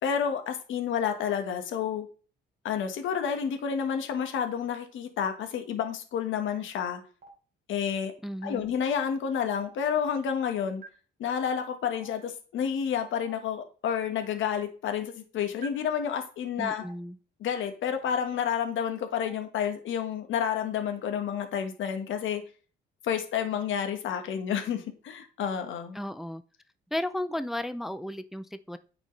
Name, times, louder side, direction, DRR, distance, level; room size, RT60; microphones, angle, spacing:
voice 1, 0.0-2.1 2.6-7.0 7.7-8.1 8.4-10.8 11.2-16.8 17.4-22.4 23.0-26.0, left 8 dB, 75° left, 6 dB, 1.5 m, -30 dB
Stream, 7.2-7.3 8.4-8.5 9.6-9.7 10.8-10.9 12.0-12.1 13.2-13.3 14.4-14.5 15.6-15.7 16.8-16.9 18.0-18.1 19.2-19.3 20.4-20.5, right 5 dB, 45° right, 3.1 m, -44 dB
voice 2, 8.2-8.7 16.6-17.2 25.9-26.4 26.9-28.8, left 1 dB, ahead, 12 dB, 0.4 m, -34 dB
9.3 x 5.2 x 3.2 m, 0.38 s
cardioid pair, 90°, 20 cm